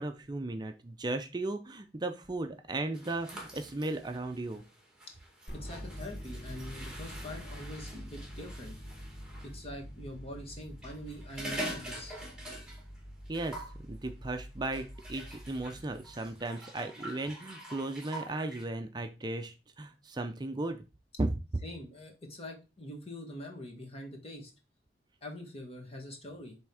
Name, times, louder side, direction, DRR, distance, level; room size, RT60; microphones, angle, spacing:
voice 1, 0.0-4.6 13.3-20.8 21.2-21.4, right 2 dB, 25° right, 6 dB, 0.5 m, -36 dB
sound 1, 2.9-9.5 10.6-13.0 13.3-13.8 14.7-18.6, right 1 dB, 5° right, 2.0 m, -45 dB
sound 2, 5.5-16.4, equal, 70° left, 1.7 m, -46 dB
voice 2, 5.5-8.8 9.4-12.1 21.6-24.5 25.2-26.6, left 1 dB, 35° left, 2 dB, 1.7 m, -44 dB
7.6 x 3.5 x 4.8 m, 0.29 s
head